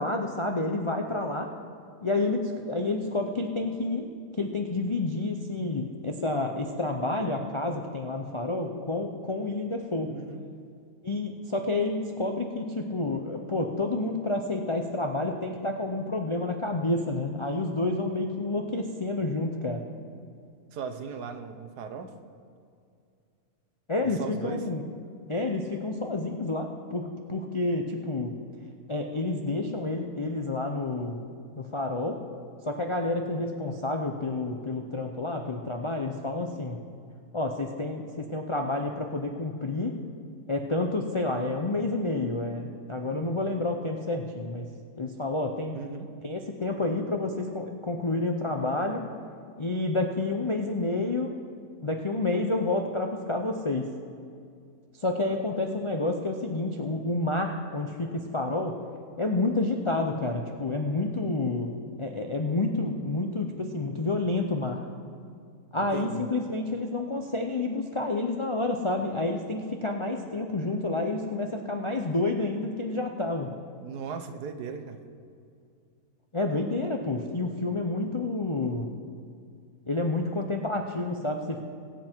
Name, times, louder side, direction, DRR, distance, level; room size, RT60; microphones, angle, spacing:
voice 1, 0.0-1.5 2.0-4.1 4.3-10.1 11.0-19.8 23.9-24.8 25.3-28.4 28.9-31.2 31.6-32.2 32.6-36.8 37.3-40.0 40.5-44.7 45.0-45.8 46.2-49.0 49.6-51.3 51.8-53.9 55.0-58.7 59.2-61.7 62.0-64.9 65.7-73.5 76.3-78.9 79.9-81.6, left 2 dB, 45° left, 3 dB, 0.3 m, -29 dB
voice 2, 10.1-10.4 20.7-22.1 24.1-24.7 45.7-46.1 65.9-66.3 73.8-75.0, right 6 dB, 85° right, 7 dB, 1.5 m, -37 dB
22.5 x 7.7 x 4.5 m, 2.4 s
omnidirectional pair, 1.7 m